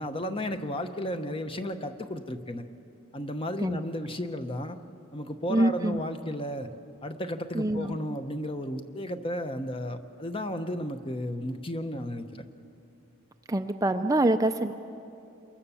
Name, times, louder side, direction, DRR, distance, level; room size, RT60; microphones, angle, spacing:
voice 1, 0.0-2.6 3.1-4.8 5.1-6.7 7.0-12.4, equal, 25° left, 8 dB, 1.0 m, -33 dB
voice 2, 5.5-6.0 7.5-8.0 13.5-14.7, right 1 dB, 15° right, 7 dB, 0.5 m, -25 dB
28.0 x 23.0 x 7.1 m, 2.8 s
head